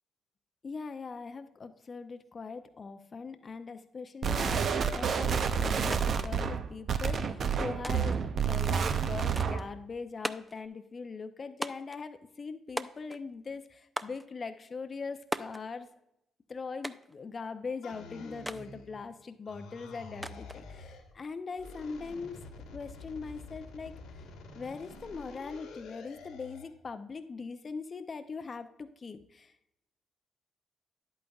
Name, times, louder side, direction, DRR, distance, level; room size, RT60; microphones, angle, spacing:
voice 1, 0.6-15.9 16.5-22.4 22.7-24.2 24.5-29.5, left 4 dB, 45° left, 9 dB, 0.6 m, -41 dB
sound 1, 4.2-9.7, right 6 dB, 60° right, 0.6 m, -29 dB
sound 2, 5.9-6.0 6.3-7.1 7.8-8.3 9.4-9.7 10.2-10.6 11.6-12.0 12.8-13.3 14.0-14.3 15.3-15.6 16.8-17.2 18.5-18.7 20.2-20.6, right 1 dB, 10° right, 0.4 m, -38 dB
sound 3, 17.8-19.1 19.5-21.1 21.5-26.7, left 3 dB, 85° left, 1.4 m, -48 dB
10.5 x 8.5 x 2.4 m, 0.83 s
hypercardioid pair, 55°, 0 cm